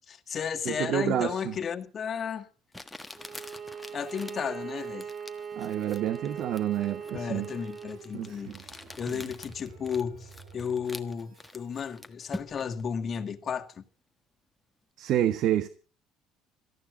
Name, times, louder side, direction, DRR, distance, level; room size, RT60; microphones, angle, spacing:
voice 1, 0.1-2.5 3.9-5.1 7.1-13.8, left 7 dB, 40° left, 2.1 m, -34 dB
voice 2, 0.6-1.5 5.6-7.5 8.1-8.4 9.1-9.2 15.0-15.7, right 11 dB, 60° right, 1.3 m, -28 dB
Crumpling crinkling, 1.8-1.9 2.7-12.8, left 1 dB, 5° left, 1.5 m, -46 dB
Bowed string instrument, 3.1-8.1, right 6 dB, 35° right, 2.6 m, -40 dB
sound 1, 7.4-12.0, right 5 dB, 80° right, 6.7 m, -53 dB
18.0 x 14.5 x 5.1 m
cardioid pair, 120°, 0 cm